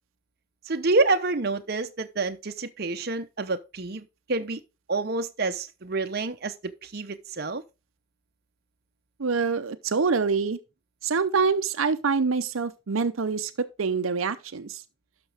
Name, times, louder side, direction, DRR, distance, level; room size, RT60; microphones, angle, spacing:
voice 1, 0.7-4.6 4.9-7.6, right 3 dB, 50° right, 0.8 m, -28 dB
voice 2, 9.2-10.6 11.0-14.8, right 5 dB, 85° right, 0.7 m, -25 dB
12.0 x 6.1 x 3.4 m
head